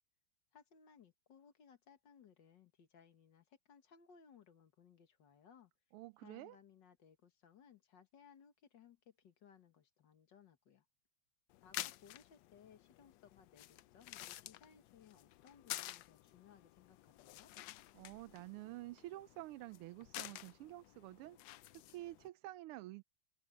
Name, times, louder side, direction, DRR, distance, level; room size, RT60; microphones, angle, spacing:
voice 1, 0.5-5.7 6.2-10.9 11.6-17.5, left 7 dB, 55° left, 2.1 m, -64 dB
voice 2, 5.9-6.6 17.9-21.4 21.9-23.0, right 17 dB, 90° right, 1.5 m, -49 dB
sound 1, 11.5-22.3, left 15 dB, 75° left, 1.1 m, -51 dB
omnidirectional pair, 2.4 m